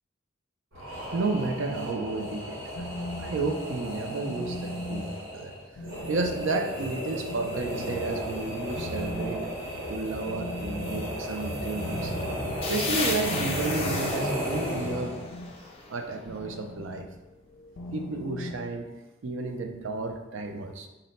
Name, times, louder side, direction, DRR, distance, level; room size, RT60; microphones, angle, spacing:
sound 1, 0.7-15.3, equal, 85° right, 1.4 m, -34 dB
voice 1, 1.1-2.8 3.2-5.5 6.1-9.4 9.9-12.1 12.7-15.2 15.9-17.0 17.9-18.9 19.2-20.9, right 3 dB, 70° right, 5 dB, 0.4 m, -32 dB
sound 2, 2.5-18.6, left 1 dB, 90° left, 0.5 m, -41 dB
sound 3, 12.6-16.2, left 4 dB, 30° left, 0.5 m, -34 dB
3.9 x 2.1 x 4.0 m, 1.0 s
head